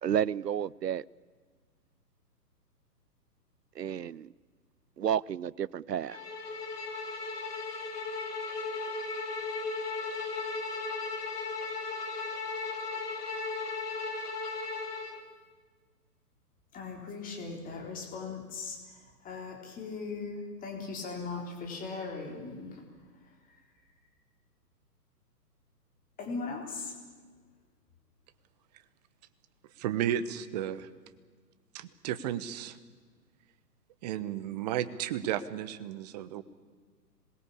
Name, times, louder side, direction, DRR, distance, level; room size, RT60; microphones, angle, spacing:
voice 1, 0.0-1.0 3.8-4.3 5.0-6.2, right 9 dB, 75° right, 0.7 m, -31 dB
Bowed string instrument, 6.1-15.2, left 4 dB, 65° left, 2.9 m, -36 dB
voice 2, 16.7-22.8 26.2-26.9, left 4 dB, 15° left, 3.9 m, -39 dB
voice 3, 29.8-30.9 31.7-32.8 34.0-36.4, right 10 dB, 25° right, 1.0 m, -33 dB
26.5 x 21.0 x 8.5 m
figure-of-eight pair, 125°, 49 cm